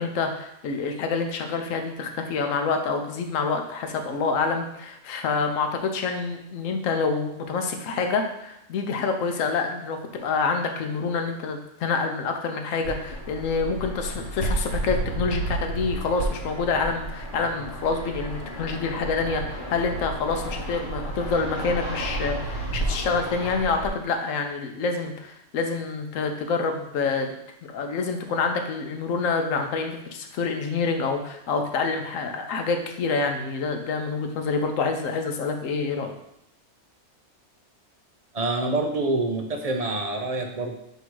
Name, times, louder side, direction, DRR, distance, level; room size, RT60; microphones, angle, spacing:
voice 1, 0.0-27.3 27.6-36.2, left 4 dB, 75° left, 5 dB, 1.1 m, -27 dB
Fixed-wing aircraft airplane, 12.8-23.9, right 1 dB, 40° left, 1.1 m, -32 dB
voice 2, 38.3-40.7, right 2 dB, 40° right, 3 dB, 0.5 m, -26 dB
8.0 x 2.8 x 4.5 m, 0.82 s
omnidirectional pair, 1.4 m